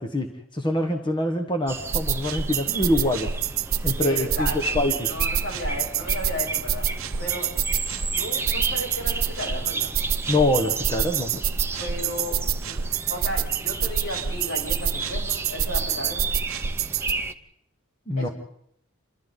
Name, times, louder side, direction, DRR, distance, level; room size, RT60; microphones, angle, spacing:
voice 1, 0.0-3.3 3.8-4.5 4.7-5.1 10.3-11.4 18.1-18.3, left 1 dB, 25° left, 4 dB, 1.6 m, -25 dB
sound 1, 1.7-17.3, right 3 dB, 10° right, 1.0 m, -34 dB
sound 2, 1.9-17.1, right 7 dB, 70° right, 0.8 m, -27 dB
voice 2, 4.0-6.9 7.2-7.6 8.2-9.9 11.8-12.4 12.7-12.8 13.1-16.3 18.2-18.3, equal, 70° left, -1 dB, 7.7 m, -34 dB
28.5 x 25.5 x 4.1 m, 0.71 s
head